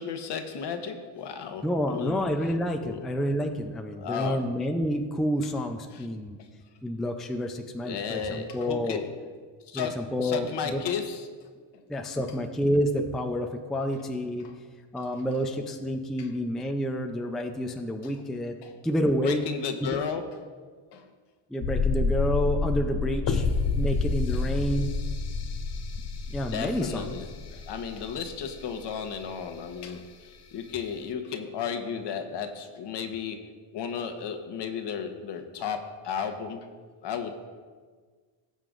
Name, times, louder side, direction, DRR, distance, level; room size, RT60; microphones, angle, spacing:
voice 1, 0.0-2.3 2.8-3.1 3.9-4.5 5.9-6.1 6.4-6.5 7.8-9.1 9.6-11.3 11.7-11.8 12.2-12.3 13.9-14.1 14.4-14.6 15.0-15.2 16.2-16.3 18.0-18.1 18.6-18.8 19.2-20.4 20.9-21.1 23.4-23.5 24.3-24.4 26.5-33.4 33.7-36.7 37.0-37.3, left 7 dB, 55° left, 6 dB, 1.1 m, -34 dB
voice 2, 1.6-6.4 6.8-9.0 9.7-10.5 10.7-10.8 11.9-14.5 14.9-18.6 18.8-19.5 19.8-20.0 21.5-23.5 23.7-24.9 26.3-27.1, equal, ahead, 4 dB, 0.4 m, -29 dB
sound 1, 21.6-28.4 28.7-28.8, left 4 dB, 35° left, 0.7 m, -28 dB
18.0 x 7.6 x 2.5 m, 1.5 s
cardioid pair, 130°, 49 cm